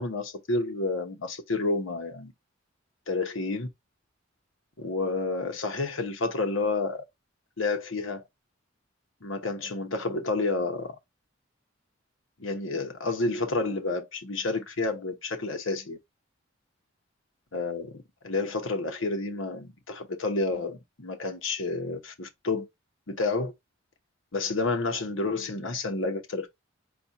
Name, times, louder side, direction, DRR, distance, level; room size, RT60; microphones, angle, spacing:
voice 1, 0.0-2.3 3.1-3.7 4.8-7.0 7.6-8.2 9.2-11.0 12.4-16.0 17.5-22.7 23.1-23.5 24.3-26.6, left 3 dB, 80° left, 1.0 m, -30 dB
4.3 x 2.4 x 4.1 m
head